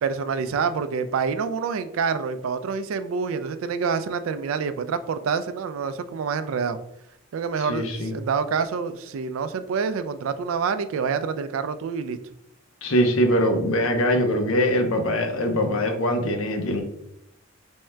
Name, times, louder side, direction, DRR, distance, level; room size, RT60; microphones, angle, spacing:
voice 1, 0.0-6.8 7.3-12.2, right 5 dB, 75° right, 12 dB, 0.3 m, -27 dB
voice 2, 7.7-8.1 12.8-16.8, equal, 80° left, 4 dB, 0.7 m, -22 dB
3.6 x 2.1 x 4.3 m, 0.80 s
head